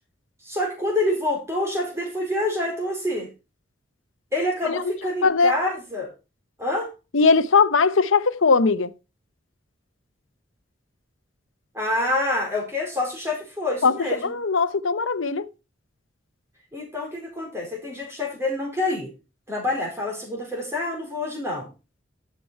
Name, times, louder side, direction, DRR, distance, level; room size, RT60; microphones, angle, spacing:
voice 1, 0.4-3.3 4.3-6.1 6.6-6.9 11.7-14.3 16.7-19.1 19.5-21.7, left 1 dB, 15° right, 4.5 m, -27 dB
voice 2, 5.2-5.6 7.1-8.9 13.8-13.9 14.2-15.5, left 4 dB, 85° left, 0.8 m, -19 dB
12.0 x 6.9 x 4.5 m
head